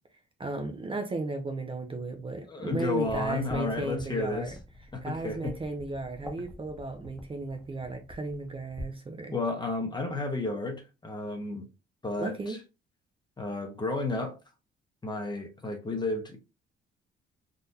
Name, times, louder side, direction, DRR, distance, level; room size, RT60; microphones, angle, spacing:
voice 1, 0.4-4.6 5.0-9.3 12.2-12.6, right 2 dB, 25° right, 0.7 m, -35 dB
voice 2, 2.5-4.6 4.9-5.5 9.3-11.6 12.0-12.6 13.4-14.4 15.0-16.4, left 3 dB, 20° left, 1.0 m, -32 dB
sound 1, 3.0-8.9, left 1 dB, ahead, 1.1 m, -47 dB
3.9 x 2.5 x 2.7 m
cardioid pair, 90°, 20 cm